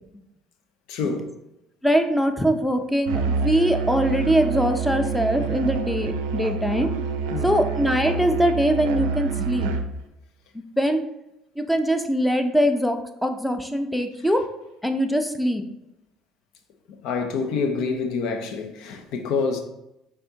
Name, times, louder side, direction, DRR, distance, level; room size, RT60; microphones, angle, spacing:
voice 1, 0.9-1.4 7.3-7.6 17.0-19.6, left 4 dB, 70° left, 0.7 m, -27 dB
voice 2, 1.8-6.9 7.4-9.7 10.8-11.0 11.6-14.4 14.8-15.6, equal, 5° left, 0.6 m, -22 dB
Musical instrument, 3.1-10.0, right 5 dB, 85° right, 0.4 m, -27 dB
5.3 x 3.5 x 2.8 m
supercardioid pair, 75°, 0 cm